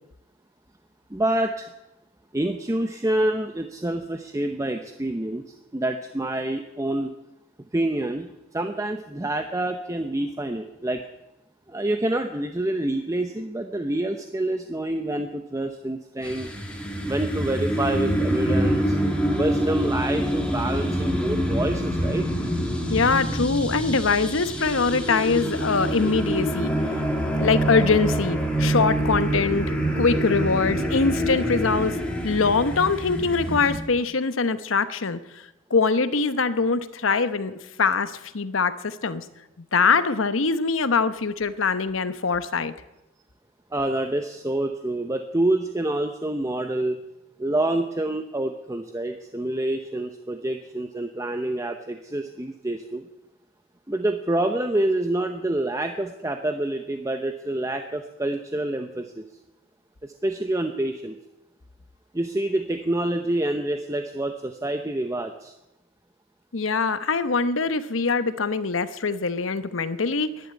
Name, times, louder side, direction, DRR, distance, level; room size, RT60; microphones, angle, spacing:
voice 1, 1.1-1.7 2.3-5.4 5.7-7.1 7.7-11.0 11.7-16.5 17.0-19.0 19.3-22.2 43.7-47.0 47.4-53.1 53.9-59.2 60.0-61.2 62.1-65.5, right 1 dB, 15° right, 6 dB, 0.7 m, -27 dB
sound 1, 16.2-33.8, equal, 5° left, 2.4 m, -26 dB
voice 2, 22.9-26.7 27.4-32.0 32.2-35.4 35.7-37.5 37.8-39.2 39.7-42.7 66.5-70.3, left 4 dB, 80° left, 13 dB, 0.9 m, -23 dB
11.5 x 11.0 x 9.9 m, 0.95 s
head